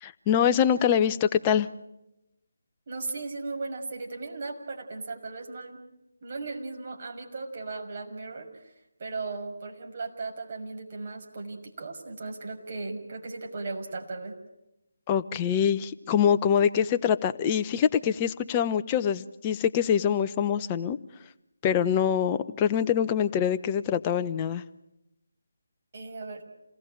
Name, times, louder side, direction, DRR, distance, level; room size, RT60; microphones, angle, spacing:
voice 1, 0.0-1.7 15.1-21.0 21.6-24.6, left 8 dB, 20° left, 10 dB, 0.9 m, -24 dB
voice 2, 2.9-5.8 6.2-8.5 9.0-14.4 25.9-26.4, right 3 dB, 40° right, 1 dB, 6.3 m, -37 dB
28.5 x 19.5 x 9.1 m, 0.90 s
figure-of-eight pair, 155°, 0 cm